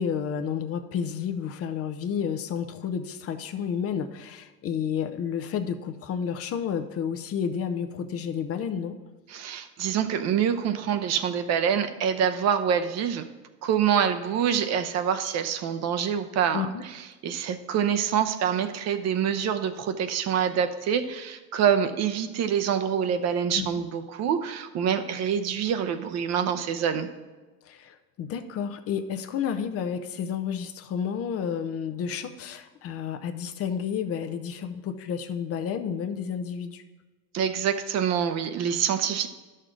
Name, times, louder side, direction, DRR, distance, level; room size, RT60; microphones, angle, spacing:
voice 1, 0.0-9.0 16.5-16.8 23.6-23.7 27.6-36.8, left 7 dB, 45° left, 8 dB, 0.7 m, -31 dB
voice 2, 9.3-13.3 13.6-16.7 17.2-27.1 37.3-39.3, right 8 dB, 50° right, 8 dB, 0.7 m, -26 dB
10.5 x 6.5 x 3.8 m, 1.2 s
cardioid pair, 125°, 33 cm